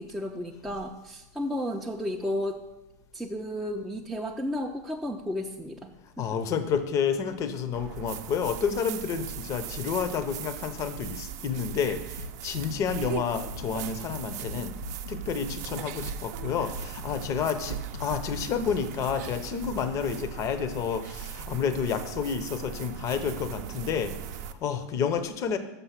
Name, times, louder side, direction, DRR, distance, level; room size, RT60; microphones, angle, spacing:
voice 1, 0.0-2.6 3.1-5.9, left 1 dB, ahead, -2 dB, 0.4 m, -33 dB
voice 2, 6.2-14.8 15.1-25.6, left 7 dB, 35° left, 11 dB, 0.7 m, -30 dB
sound 1, 7.7-24.5, right 9 dB, 65° right, 0.5 m, -39 dB
sound 2, 12.2-19.7, left 4 dB, 90° left, 0.6 m, -42 dB
6.8 x 5.3 x 5.8 m, 1.0 s
supercardioid pair, 140°, 10 cm